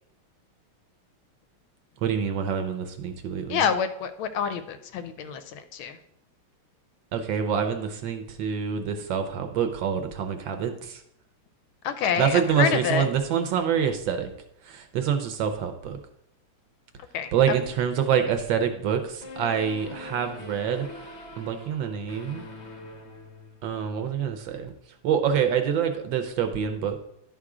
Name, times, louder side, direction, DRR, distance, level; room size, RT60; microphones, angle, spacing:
voice 1, 2.0-3.6 7.1-11.0 12.2-14.3 14.6-16.0 17.3-20.9 21.4-22.4 23.6-24.7 25.0-27.0, right 7 dB, 70° right, 7 dB, 1.3 m, -26 dB
voice 2, 3.5-6.0 11.8-13.1 17.1-17.3, left 7 dB, 75° left, 10 dB, 1.4 m, -27 dB
sound 1, 19.2-23.9, left 2 dB, 40° left, 1.0 m, -43 dB
11.0 x 3.8 x 4.8 m, 0.75 s
omnidirectional pair, 2.4 m